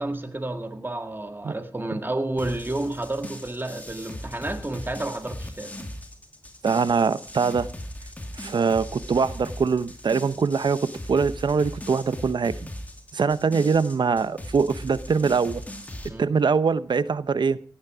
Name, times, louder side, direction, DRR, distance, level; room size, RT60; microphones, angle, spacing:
voice 1, 0.0-5.7 16.1-16.3, right 2 dB, 25° right, 7 dB, 1.8 m, -30 dB
sound 1, 2.4-16.1, left 1 dB, 20° left, 2.6 m, -39 dB
voice 2, 6.6-7.7 8.4-12.5 13.1-15.6 16.2-17.6, right 5 dB, 75° right, 15 dB, 0.8 m, -23 dB
17.0 x 9.6 x 4.9 m, 0.43 s
wide cardioid pair, 65°, 8 cm